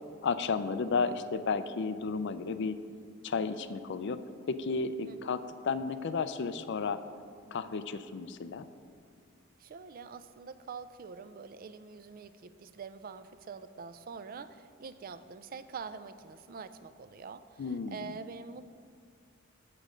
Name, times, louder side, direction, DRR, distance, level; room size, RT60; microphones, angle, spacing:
voice 1, 0.2-2.8 3.2-4.2 4.5-7.0 7.5-8.7 17.6-18.2, left 4 dB, 55° left, 12 dB, 0.4 m, -33 dB
voice 2, 9.6-18.6, right 5 dB, 45° right, 13 dB, 0.4 m, -45 dB
8.4 x 7.3 x 5.1 m, 2.2 s
head